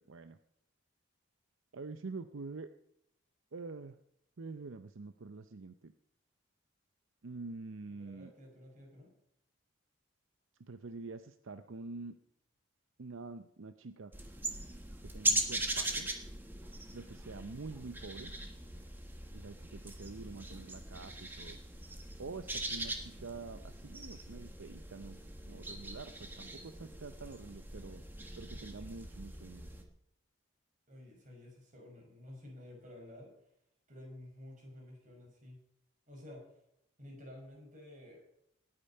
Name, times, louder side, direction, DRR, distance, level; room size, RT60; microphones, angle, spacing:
voice 1, 1.7-2.7 3.5-4.0 4.4-5.9 7.2-8.3 10.7-12.2 13.0-14.1 15.1-16.1 16.9-18.3 19.3-21.6 22.2-22.9 23.2-25.2 25.5-28.0 28.4-29.7, right 3 dB, 70° right, 10 dB, 0.6 m, -46 dB
voice 2, 7.9-9.1 30.9-33.3 33.9-35.6 36.1-36.5 37.0-38.2, left 1 dB, 40° right, 0 dB, 5.4 m, -52 dB
sound 1, 14.1-29.8, right 1 dB, 10° right, 1.5 m, -40 dB
18.5 x 8.8 x 5.5 m, 0.76 s
head